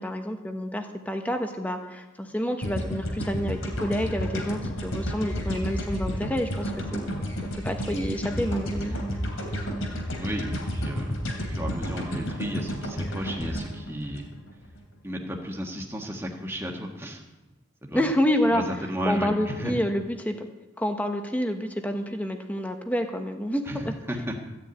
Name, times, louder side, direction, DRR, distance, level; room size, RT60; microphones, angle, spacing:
voice 1, 0.0-9.0 17.9-18.6 19.0-20.5 20.8-23.9, equal, 5° left, 5 dB, 1.1 m, -28 dB
sound 1, 2.6-14.8, equal, 80° left, 3.1 m, -31 dB
voice 2, 10.2-14.3 15.0-17.2 17.8-18.0 18.5-19.7 23.7-24.4, equal, 10° right, 1 dB, 1.6 m, -33 dB
14.5 x 6.8 x 8.9 m, 1.1 s
head